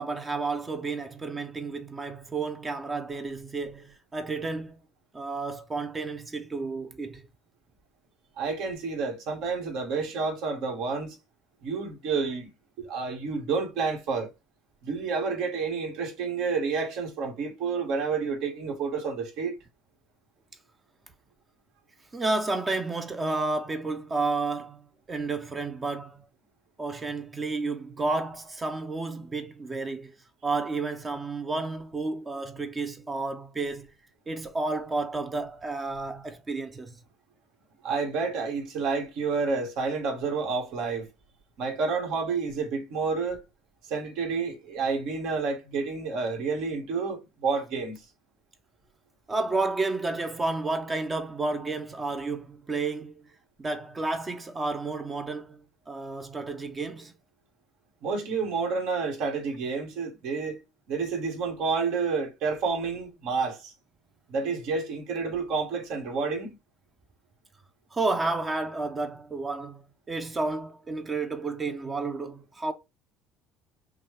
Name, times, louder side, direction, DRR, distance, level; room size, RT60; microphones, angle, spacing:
voice 1, 0.0-4.7 5.1-7.2 22.1-26.2 26.8-30.2 30.4-33.9 34.3-37.0 49.3-53.2 53.6-55.6 55.9-57.1 67.9-72.7, right 3 dB, 20° right, 0.6 m, -31 dB
voice 2, 8.4-11.2 11.6-12.5 12.8-14.3 14.8-19.6 37.8-41.1 41.6-43.4 43.9-48.0 58.0-60.6 60.9-63.7 64.3-66.6, right 4 dB, 70° right, 1.7 m, -29 dB
5.8 x 2.3 x 3.3 m
cardioid pair, 140°, 0 cm